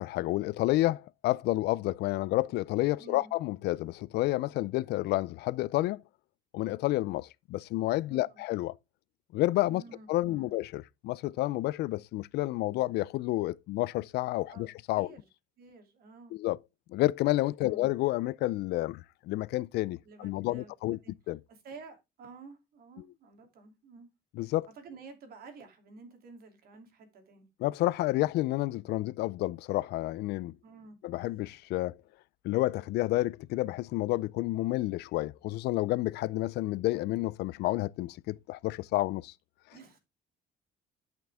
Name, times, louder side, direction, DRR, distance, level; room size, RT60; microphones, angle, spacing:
voice 1, 0.0-6.0 6.5-8.8 9.3-9.8 10.1-15.1 16.3-16.6 16.9-21.0 21.3-21.4 24.4-24.7 27.6-30.5 31.0-32.0 32.4-39.3, left 17 dB, 75° left, 0.4 m, -30 dB
voice 2, 3.0-3.3 8.1-8.4 9.6-10.5 14.5-15.3 15.6-16.4 17.6-17.9 20.0-21.1 21.5-24.1 24.7-27.5 30.6-31.0 39.7-40.0, right 4 dB, 65° right, 2.8 m, -51 dB
11.0 x 5.9 x 3.5 m
cardioid pair, 110°, 17 cm